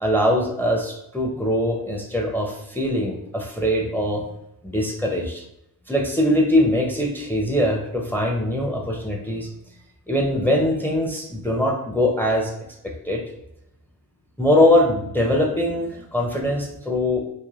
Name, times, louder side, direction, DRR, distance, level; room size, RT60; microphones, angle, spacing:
voice 1, 0.0-4.2 4.6-5.4 5.9-9.6 10.1-12.5 12.8-13.2 14.4-17.2, left 1 dB, 5° left, 0 dB, 0.5 m, -22 dB
3.3 x 2.1 x 2.4 m, 0.82 s
cardioid pair, 55°, 40 cm